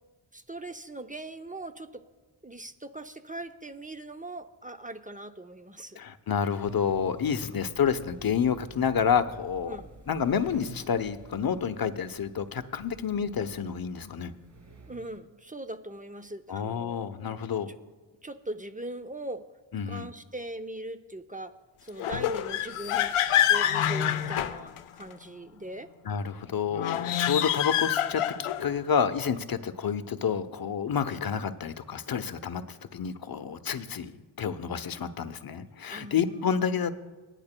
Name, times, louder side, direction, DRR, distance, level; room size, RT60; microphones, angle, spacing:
voice 1, 0.3-2.0 2.4-6.0 7.5-7.6 9.7-9.9 14.9-17.4 18.2-19.4 19.9-21.5 21.8-23.1 23.5-25.9 35.9-36.8, right 1 dB, 15° right, 9 dB, 0.6 m, -40 dB
voice 2, 6.0-9.8 10.1-14.3 16.5-17.7 19.7-20.1 26.0-34.1 34.4-36.9, left 7 dB, 45° left, 12 dB, 0.8 m, -29 dB
sound 1, 6.6-15.2, right 2 dB, 35° right, 1.6 m, -48 dB
sound 2, 22.0-25.1 26.7-28.7, left 11 dB, 90° left, 0.6 m, -26 dB
18.0 x 10.5 x 2.2 m, 1.3 s
cardioid pair, 55°, 50 cm